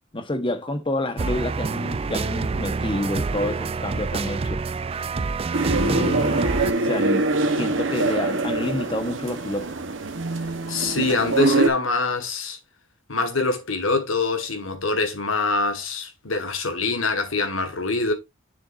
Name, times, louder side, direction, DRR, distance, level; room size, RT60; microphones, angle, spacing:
voice 1, 0.1-4.6 5.7-7.3 7.5-9.7, left 1 dB, 25° left, 1.1 m, -28 dB
sound 1, 1.2-6.7, right 4 dB, 30° right, 0.3 m, -27 dB
sound 2, 5.5-11.7, right 2 dB, 65° right, 1.1 m, -24 dB
voice 2, 10.7-12.6 13.1-18.1, left 3 dB, 75° left, 1.7 m, -24 dB
6.9 x 6.9 x 2.5 m
head